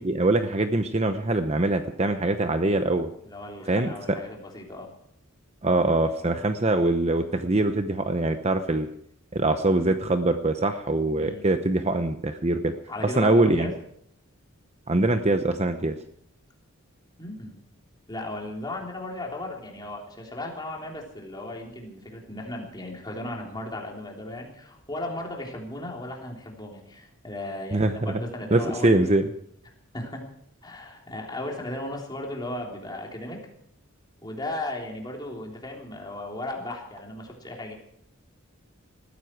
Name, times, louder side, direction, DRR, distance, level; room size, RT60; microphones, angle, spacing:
voice 1, 0.0-3.1 3.7-4.2 5.6-8.9 9.3-12.7 13.2-13.7 14.9-16.0 27.7-28.1 28.5-29.3, right 2 dB, 30° right, 8 dB, 0.8 m, -23 dB
voice 2, 3.2-4.9 11.2-11.5 12.9-13.7 17.2-17.6 18.1-28.9 29.9-30.3 30.6-33.4 34.2-37.7, left 1 dB, 20° left, 0 dB, 3.6 m, -36 dB
20.0 x 14.5 x 4.7 m, 0.69 s
head